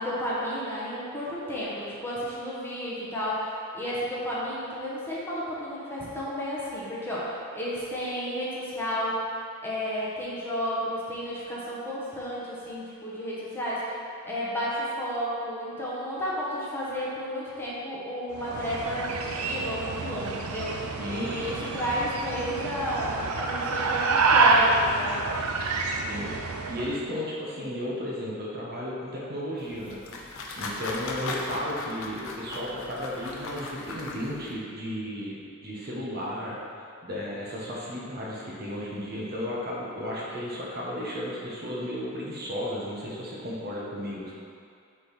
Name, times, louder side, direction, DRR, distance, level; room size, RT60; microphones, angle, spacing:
voice 1, 0.0-9.2 9.6-14.0 14.2-25.2, equal, 10° left, -8 dB, 1.4 m, -32 dB
sound 1, 18.3-27.0, right 3 dB, 85° right, 0.6 m, -27 dB
voice 2, 20.9-21.3 26.1-26.3 26.7-30.3 30.5-36.6 37.0-44.3, equal, 50° right, -5 dB, 1.3 m, -34 dB
sound 2, 29.6-34.5, left 2 dB, 70° left, 0.8 m, -37 dB
8.2 x 4.0 x 4.2 m, 2.3 s
head